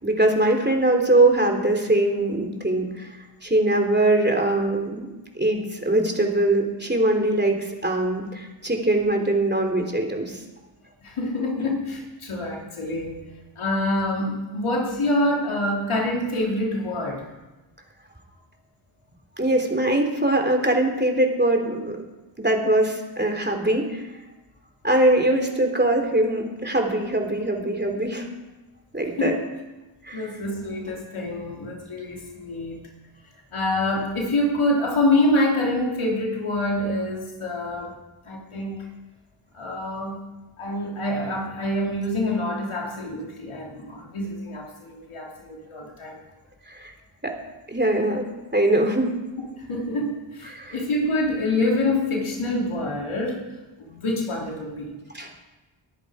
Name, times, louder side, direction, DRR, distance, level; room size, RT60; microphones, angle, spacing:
voice 1, 0.0-3.1 3.4-10.4 19.4-22.0 22.4-24.1 24.8-28.3 28.9-29.3 30.0-30.3 46.7-46.9 47.2-47.4 47.7-49.1 50.5-50.7 55.1-55.4, right 1 dB, 20° right, 3 dB, 3.2 m, -22 dB
voice 2, 11.0-13.3 13.6-17.3 29.2-29.4 30.1-32.9 33.5-38.0 38.2-38.8 39.5-40.2 40.6-46.2 49.4-53.5 53.8-55.0, left 1 dB, 90° left, -1 dB, 2.9 m, -26 dB
20.5 x 10.5 x 4.9 m, 1.1 s
cardioid pair, 45°, 48 cm